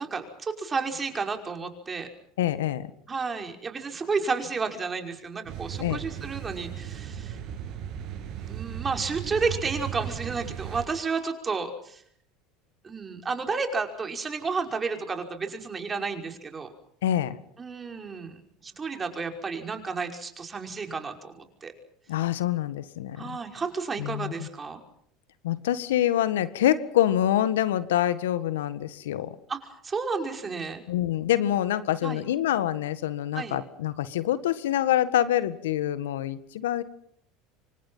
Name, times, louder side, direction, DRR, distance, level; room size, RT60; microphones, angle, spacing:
voice 1, 0.0-2.1 3.1-7.4 8.5-12.0 12.8-16.7 17.6-21.7 23.2-24.8 29.5-30.8 32.0-32.2 33.3-33.6, right 4 dB, 25° right, 5 dB, 5.4 m, -31 dB
voice 2, 2.4-2.9 5.8-6.0 17.0-17.4 22.1-23.4 24.0-24.5 25.4-29.3 30.9-36.8, left 12 dB, 80° left, 14 dB, 1.6 m, -26 dB
sound 1, 5.4-10.9, right 10 dB, 55° right, 7.4 m, -36 dB
27.0 x 25.0 x 5.7 m, 0.67 s
hypercardioid pair, 85°, 0 cm